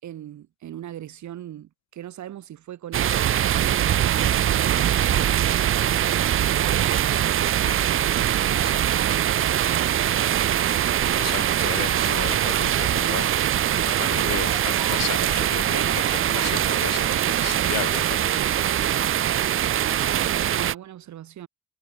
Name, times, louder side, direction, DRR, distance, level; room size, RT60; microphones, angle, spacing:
voice 1, 0.0-4.9 5.2-7.1 8.5-10.5 20.3-21.5, right 11 dB, 70° right, 2.7 m, -40 dB
sound 1, 2.9-20.7, right 11 dB, 45° right, 0.5 m, -22 dB
voice 2, 11.1-13.3 13.7-18.6 18.8-19.2, left 13 dB, 60° left, 0.6 m, -35 dB
sound 2, 14.4-15.0 16.1-16.6 18.7-18.8 19.9-20.0, right 2 dB, 10° right, 1.6 m, -43 dB
cardioid pair, 90°, 30 cm